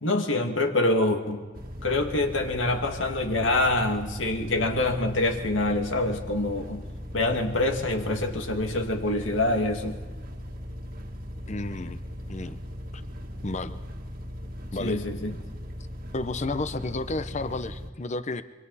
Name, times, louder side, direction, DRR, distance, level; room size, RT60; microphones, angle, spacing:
voice 1, 0.0-1.4 1.8-6.8 7.1-10.0 14.8-15.4, left 2 dB, 90° left, 4 dB, 2.2 m, -25 dB
sound 1, 1.5-17.9, equal, 50° right, 1.7 m, -39 dB
voice 2, 11.5-12.0 12.3-12.6 12.9-13.0 13.4-13.8 14.7-15.0 16.1-18.4, left 2 dB, 40° left, 12 dB, 0.8 m, -32 dB
26.5 x 24.0 x 4.2 m, 1.4 s
head